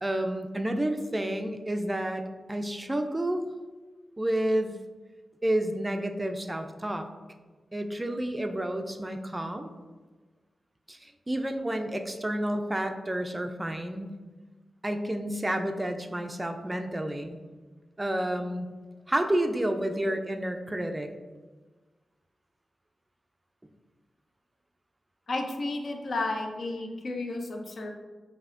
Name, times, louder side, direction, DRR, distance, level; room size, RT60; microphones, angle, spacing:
voice 1, 0.0-3.4 4.2-4.8 5.4-7.1 7.7-9.7 10.9-14.1 14.8-17.4 18.0-18.7 19.1-21.1, right 1 dB, 15° right, 6 dB, 0.4 m, -30 dB
voice 2, 8.5-8.9 20.0-20.1 25.3-27.9, left 2 dB, 60° left, 3 dB, 0.5 m, -33 dB
5.3 x 2.7 x 2.5 m, 1.3 s
wide cardioid pair, 95°, 0 cm